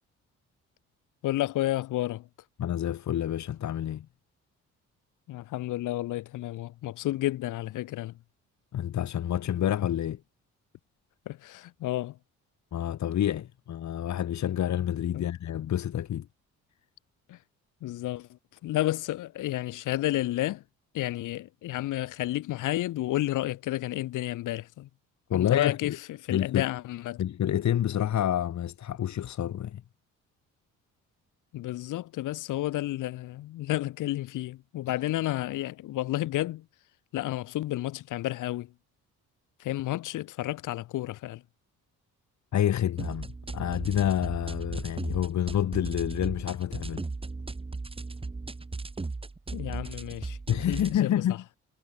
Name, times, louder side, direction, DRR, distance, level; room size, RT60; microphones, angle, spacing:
voice 1, 1.2-2.3 5.3-8.1 11.3-12.2 15.1-15.3 17.3-17.4 17.8-20.6 20.9-24.9 25.3-27.2 31.5-36.7 37.1-38.7 39.6-41.4 49.5-50.4 50.6-51.2, left 15 dB, 90° left, 5.7 m, -31 dB
voice 2, 2.6-4.1 8.7-10.2 12.7-16.3 25.3-26.0 26.3-26.7 27.2-29.8 42.5-47.0 50.5-51.4, left 11 dB, 65° left, 3.6 m, -28 dB
sound 1, 43.0-51.0, right 3 dB, 20° right, 1.5 m, -37 dB
cardioid pair, 90°, 30 cm